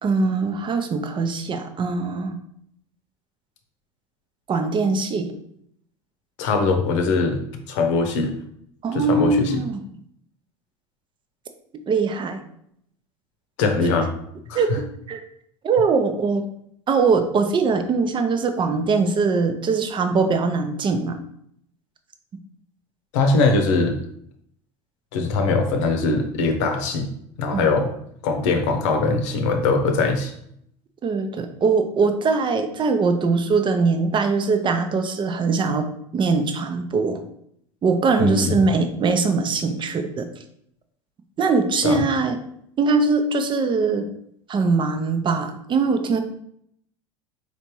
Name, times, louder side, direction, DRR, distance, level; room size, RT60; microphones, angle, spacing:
voice 1, 0.0-2.4 4.5-5.3 8.8-9.8 11.9-12.4 14.5-15.2 15.6-16.4 16.9-21.2 27.5-27.7 31.0-35.9 36.1-37.2 37.8-40.3 41.4-42.4 42.8-44.1 44.5-46.2, right 4 dB, 30° right, 7 dB, 0.6 m, -21 dB
voice 2, 6.4-7.4 7.7-8.3 8.9-9.6 13.6-14.1 14.5-14.6 23.1-24.0 25.1-27.1 27.4-27.9 28.2-30.3 38.2-38.6 41.8-42.0, left 3 dB, 70° left, 5 dB, 0.8 m, -21 dB
4.1 x 3.3 x 3.0 m, 0.71 s
hypercardioid pair, 85°, 16 cm